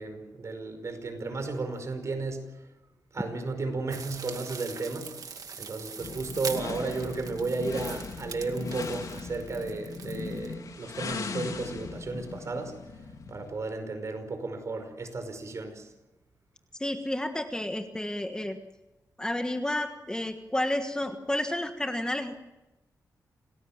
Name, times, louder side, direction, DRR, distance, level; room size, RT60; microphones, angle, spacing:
voice 1, 0.0-2.5 3.1-5.1 5.6-12.8 13.3-15.9, right 3 dB, 50° right, 7 dB, 5.3 m, -34 dB
sound 1, 3.9-10.5, right 6 dB, 65° right, 2.1 m, -42 dB
sound 2, 6.0-13.6, left 4 dB, 65° left, 3.3 m, -38 dB
voice 2, 16.8-18.6 19.2-22.4, left 1 dB, 10° left, 6 dB, 1.5 m, -31 dB
28.0 x 19.0 x 7.4 m, 1.0 s
wide cardioid pair, 135°, 7 cm